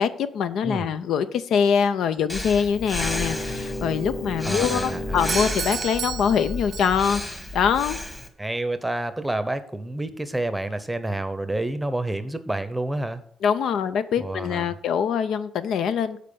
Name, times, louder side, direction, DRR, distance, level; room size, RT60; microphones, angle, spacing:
voice 1, 0.0-7.2 7.5-8.0 13.4-16.2, left 7 dB, 75° left, 12 dB, 0.5 m, -23 dB
Breathing, 2.3-8.3, left 2 dB, 15° left, 1.3 m, -32 dB
sound 1, 3.0-5.7, left 1 dB, 50° left, 2.2 m, -33 dB
voice 2, 4.4-5.2 8.4-13.2 14.2-14.8, right 1 dB, 10° right, 11 dB, 0.8 m, -29 dB
Doorbell, 5.3-7.3, right 8 dB, 65° right, 0.5 m, -33 dB
7.4 x 4.3 x 6.8 m, 0.63 s
cardioid pair, 90°, 0 cm